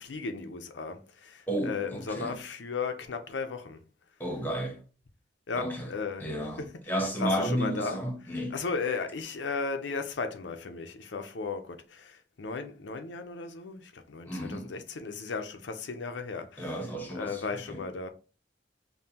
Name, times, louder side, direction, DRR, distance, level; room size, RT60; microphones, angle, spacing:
voice 1, 0.0-3.8 5.5-6.3 6.6-6.7 7.0-18.1, left 4 dB, 85° left, 0.6 m, -36 dB
voice 2, 1.5-2.4 4.2-4.8 5.6-5.9 6.2-8.6 14.3-14.7 16.6-17.4 17.7-17.8, equal, 10° left, 0.8 m, -32 dB
5.3 x 2.2 x 2.8 m
head